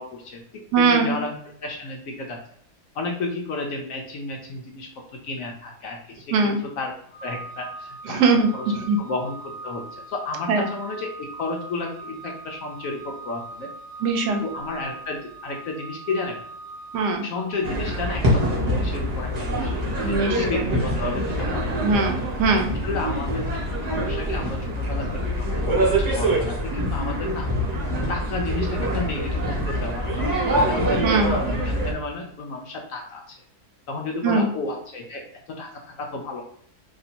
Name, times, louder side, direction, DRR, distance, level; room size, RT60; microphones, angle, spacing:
voice 1, 0.0-2.4 2.9-4.9 5.2-6.9 7.2-8.2 8.5-8.7 9.0-13.7 14.2-16.4 17.2-22.0 22.5-23.5 23.9-27.5 28.1-33.4 33.9-35.2 35.5-36.4, left 3 dB, 70° left, 2 dB, 0.9 m, -32 dB
voice 2, 0.7-1.2 6.3-6.6 8.1-9.0 10.5-10.7 14.0-14.4 16.9-17.2 20.0-20.7 21.8-22.7 31.0-31.3 34.2-34.5, right 4 dB, 80° right, 4 dB, 1.2 m, -21 dB
Organ, 7.1-17.9, right 3 dB, 30° left, 1.1 m, -40 dB
sound 1, 17.6-31.9, equal, 30° right, 0.9 m, -25 dB
2.9 x 2.7 x 4.1 m, 0.64 s
omnidirectional pair, 1.8 m